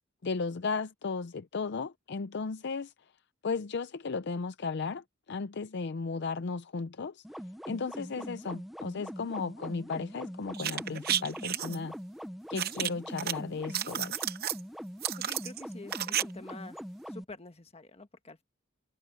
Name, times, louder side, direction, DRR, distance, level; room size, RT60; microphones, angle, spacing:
voice 1, 0.2-2.9 3.4-7.2 7.7-11.9 12.5-14.3, left 4 dB, 55° left, 0.5 m, -35 dB
sound 1, 7.2-17.2, equal, ahead, 0.7 m, -43 dB
sound 2, 10.5-11.8 12.6-13.3 13.6-14.6 15.0-16.2 16.5-16.6, right 11 dB, 50° right, 0.8 m, -32 dB
voice 2, 15.2-16.8 17.1-18.4, left 2 dB, 30° left, 1.5 m, -47 dB
head